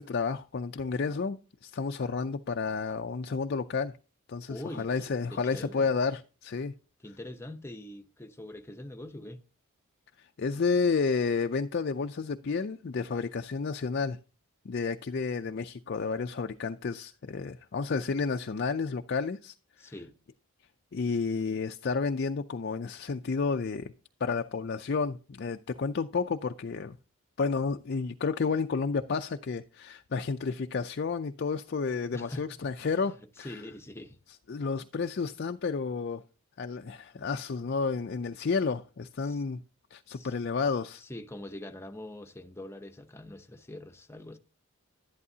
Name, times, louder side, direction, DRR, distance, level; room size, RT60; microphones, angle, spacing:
voice 1, 0.0-3.9 4.3-6.7 10.2-14.2 14.7-19.9 20.9-23.9 24.2-27.0 27.4-33.6 34.5-36.2 36.6-39.6 39.9-41.0, left 4 dB, 45° left, 0.4 m, -31 dB
voice 2, 4.5-5.0 5.3-5.9 7.0-9.4 19.8-20.1 32.1-34.2 39.2-39.4 40.1-40.3 40.9-44.4, left 1 dB, 10° left, 0.7 m, -44 dB
11.5 x 11.0 x 2.8 m
head